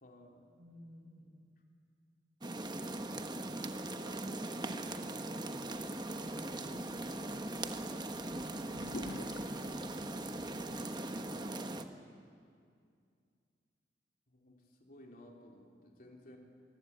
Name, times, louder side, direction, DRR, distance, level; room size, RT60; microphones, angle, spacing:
voice 1, 0.0-0.5 11.3-11.8 14.3-16.4, left 1 dB, 50° left, 1 dB, 3.2 m, -56 dB
voice 2, 0.6-1.5 3.8-5.4 6.0-7.6 8.1-10.9, equal, 65° right, 2 dB, 4.9 m, -54 dB
sound 1, 2.4-11.8, right 2 dB, 25° right, 1.0 m, -40 dB
sound 2, 5.7-11.2, left 1 dB, 75° left, 1.5 m, -51 dB
25.0 x 20.0 x 8.5 m, 2.3 s
head